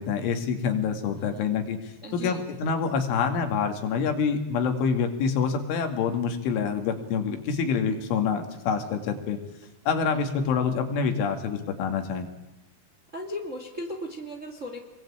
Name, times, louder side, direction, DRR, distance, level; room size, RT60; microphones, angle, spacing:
voice 1, 0.0-9.4 9.9-12.3, left 6 dB, 85° left, 5 dB, 4.8 m, -26 dB
voice 2, 1.2-1.5 2.0-2.4 13.1-14.8, equal, 30° right, 4 dB, 1.5 m, -37 dB
27.5 x 22.0 x 8.8 m, 0.93 s
omnidirectional pair, 5.4 m